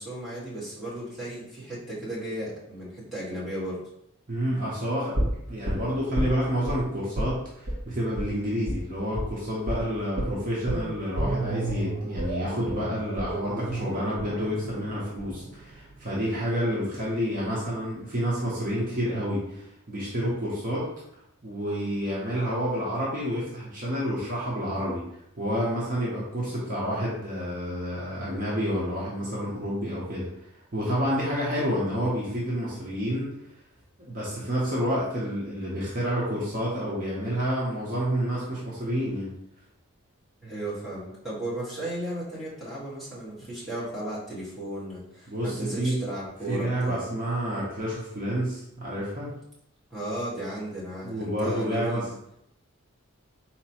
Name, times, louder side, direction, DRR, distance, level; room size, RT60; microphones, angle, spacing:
voice 1, 0.0-3.8 40.4-47.1 49.9-52.1, right 1 dB, ahead, -11 dB, 1.4 m, -35 dB
voice 2, 4.3-20.8 21.4-25.0 25.4-30.3 30.7-33.3 34.0-39.3 45.3-46.0 46.5-49.3 51.0-52.0, equal, 40° right, -6 dB, 0.8 m, -29 dB
sound 1, 5.1-6.8 7.2-7.4 7.7-7.8 8.2-8.3 8.7-8.8 9.2-9.4 9.7-9.8 10.2-16.2 16.5-16.6, right 1 dB, 75° right, 1.0 m, -31 dB
4.1 x 2.9 x 2.9 m, 0.77 s
head